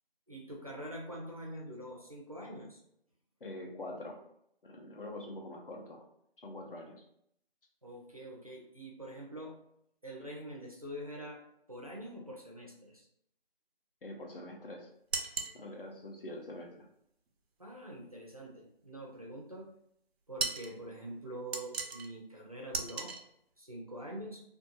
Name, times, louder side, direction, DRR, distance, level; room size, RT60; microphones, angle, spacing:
voice 1, 0.3-2.8 7.8-9.6 10.0-11.4 11.7-13.1 17.6-19.7 20.3-23.1 23.6-24.4, right 1 dB, 40° right, -2 dB, 0.4 m, -45 dB
voice 2, 3.4-4.2 4.6-6.1 6.4-7.0 14.0-14.9 15.5-16.9, left 1 dB, 65° left, 1 dB, 0.7 m, -44 dB
sound 1, 15.1-15.6 20.4-20.7 21.5-22.1 22.7-23.2, right 4 dB, 90° right, 0.5 m, -36 dB
2.5 x 2.2 x 2.8 m, 0.72 s
figure-of-eight pair, 175°, 30 cm